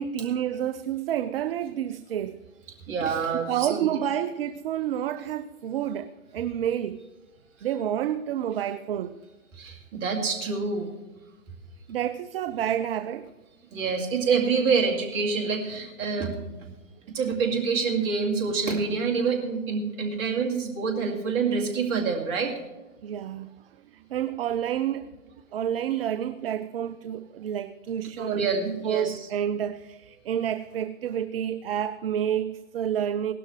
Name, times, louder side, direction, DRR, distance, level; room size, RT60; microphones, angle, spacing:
voice 1, 0.0-2.4 3.5-7.0 7.6-9.2 11.9-13.3 23.0-23.5 23.9-25.1 25.5-33.3, right 10 dB, 45° right, 0.5 m, -29 dB
voice 2, 2.9-3.9 9.6-10.9 13.7-16.7 17.1-22.5 28.2-29.3, right 5 dB, 30° right, 2.5 m, -27 dB
17.0 x 12.5 x 3.2 m
hypercardioid pair, 125°, 41 cm